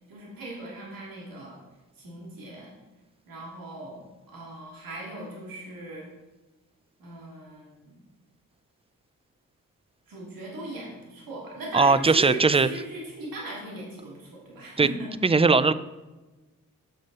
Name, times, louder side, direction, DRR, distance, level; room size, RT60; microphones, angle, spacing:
voice 1, 0.1-1.6 2.0-2.7 3.3-6.1 7.0-8.0 10.1-15.1, right 2 dB, 80° right, -4 dB, 3.0 m, -39 dB
voice 2, 11.7-12.7 14.8-14.9 15.2-15.7, right 4 dB, 15° right, 15 dB, 0.5 m, -19 dB
8.9 x 6.4 x 5.5 m, 1.1 s
cardioid pair, 65°, 34 cm